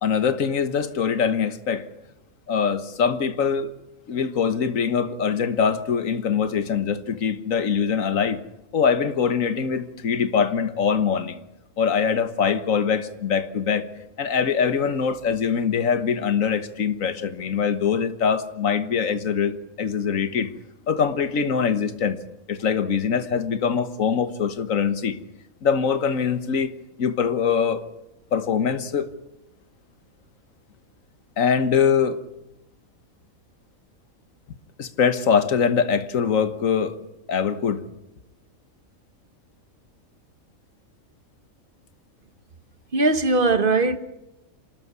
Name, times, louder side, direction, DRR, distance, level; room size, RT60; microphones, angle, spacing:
voice 1, 0.0-1.8 2.5-3.7 4.1-8.4 8.7-11.4 11.8-13.8 14.2-20.5 20.9-22.2 22.5-25.2 25.6-26.7 27.0-27.8 28.3-29.1 31.4-32.2 34.8-37.0 37.3-37.8, left 6 dB, 65° left, 1.7 m, -23 dB
voice 2, 42.9-44.0, right 3 dB, 40° right, 1.4 m, -20 dB
27.0 x 13.0 x 9.6 m
omnidirectional pair, 1.5 m